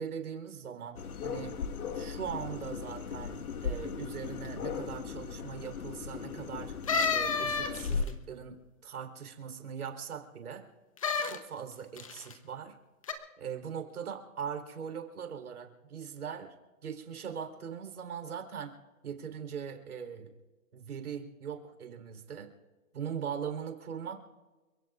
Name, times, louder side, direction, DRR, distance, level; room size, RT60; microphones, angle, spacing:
voice 1, 0.0-1.6 1.9-6.7 7.1-10.7 11.2-12.8 13.4-16.6 16.8-18.8 19.0-20.3 20.7-22.5 22.9-24.2, right 7 dB, 85° right, 4 dB, 4.0 m, -40 dB
sound 1, 0.9-8.0, left 6 dB, 85° left, 1.7 m, -37 dB
sound 2, 6.9-8.1 11.0-11.4 12.0-12.3 13.0-13.1, left 5 dB, 25° left, 0.9 m, -30 dB
29.5 x 17.0 x 2.5 m, 1.2 s
hypercardioid pair, 180°, 43 cm